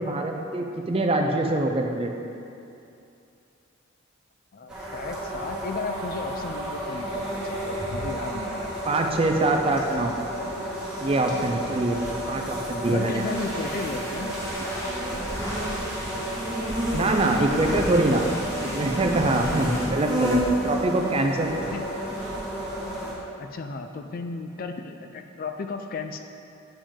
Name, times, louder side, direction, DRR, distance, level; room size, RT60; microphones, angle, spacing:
voice 1, 0.0-2.3 8.9-10.2 11.0-12.0 12.3-13.2 16.9-18.2 18.7-21.6, right 2 dB, 25° right, 3 dB, 0.4 m, -24 dB
voice 2, 4.5-8.7 12.4-12.5 12.9-14.4 19.4-19.7 21.1-21.2 21.7-21.9 23.4-26.2, left 4 dB, 45° left, 6 dB, 0.3 m, -35 dB
sound 1, 4.7-23.1, right 1 dB, 5° right, 1.3 m, -31 dB
sound 2, 13.0-19.9, equal, 15° left, 1.2 m, -37 dB
8.7 x 5.1 x 3.6 m, 2.7 s
head